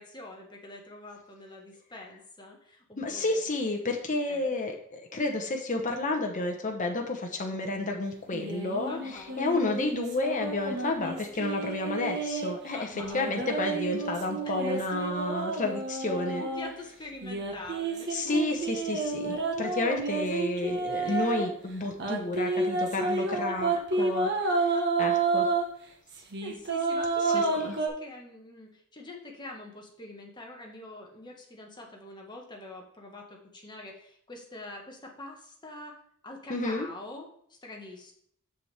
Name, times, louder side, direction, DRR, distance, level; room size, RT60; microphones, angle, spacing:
voice 1, 0.0-3.5 4.3-4.5 8.9-9.4 12.7-13.3 14.9-15.0 16.4-18.4 21.0-21.4 24.0-24.3 24.7-25.1 26.4-35.9 36.2-37.3 37.6-38.1, left 2 dB, 20° left, 0 dB, 1.4 m, -45 dB
voice 2, 3.0-16.4 18.1-24.3 25.0-25.5 27.2-27.7 36.5-36.9, left 2 dB, 35° left, 2 dB, 0.9 m, -31 dB
sound 1, 8.3-12.5 12.9-16.7 17.2-21.5 22.0-25.6 26.1-27.9, right 3 dB, 55° right, 1.2 m, -30 dB
7.2 x 6.8 x 3.4 m, 0.65 s
head